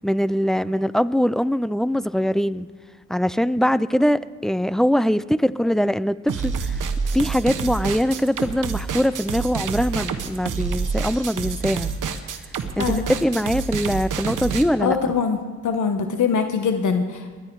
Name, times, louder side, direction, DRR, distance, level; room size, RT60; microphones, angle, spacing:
voice 1, 0.0-2.7 3.1-6.8 7.1-11.9 12.8-15.0, equal, ahead, 0.3 m, -22 dB
sound 1, 6.3-14.6, right 6 dB, 75° right, 1.1 m, -27 dB
voice 2, 12.8-13.1 14.8-17.4, left 5 dB, 70° left, 1.1 m, -23 dB
21.0 x 10.5 x 4.6 m
cardioid pair, 85°, 31 cm